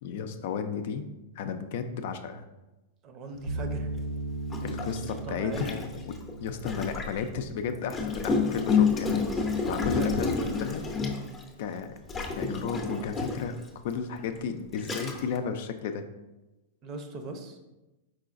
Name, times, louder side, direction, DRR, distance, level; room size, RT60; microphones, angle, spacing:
voice 1, 0.0-1.0 1.4-2.5 4.6-6.1 6.4-9.2 9.7-10.9 11.6-11.9 12.3-13.6 13.8-16.0, left 6 dB, 65° left, 8 dB, 0.4 m, -33 dB
voice 2, 3.0-4.0 5.0-5.9 10.0-10.6 16.8-17.7, right 3 dB, 40° right, 6 dB, 0.6 m, -40 dB
sound 1, 3.5-8.6, right 2 dB, 90° right, 0.3 m, -38 dB
Gurgling, 3.6-3.7 4.5-7.2 7.9-11.5 12.1-13.6 14.3-14.4 14.8-15.4, left 5 dB, 20° left, 0.6 m, -29 dB
4.8 x 3.8 x 2.5 m, 1.0 s
hypercardioid pair, 115°, 0 cm